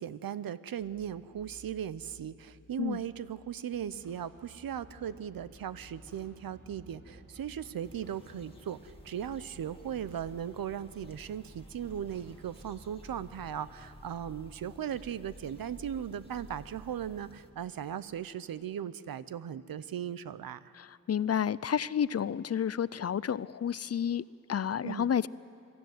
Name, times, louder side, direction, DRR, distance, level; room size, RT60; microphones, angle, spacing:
voice 1, 0.0-20.7 24.8-25.1, right 9 dB, 80° right, 16 dB, 0.7 m, -38 dB
sound 1, 0.8-18.3 18.6-18.7, equal, 15° right, 3.1 m, -55 dB
sound 2, 3.7-13.9, right 2 dB, 65° right, 6.3 m, -60 dB
sound 3, 7.8-17.5, left 1 dB, 15° left, 2.0 m, -58 dB
voice 2, 20.7-25.3, left 8 dB, 45° left, 19 dB, 0.4 m, -31 dB
22.5 x 13.5 x 9.3 m, 2.7 s
wide cardioid pair, 75°, 34 cm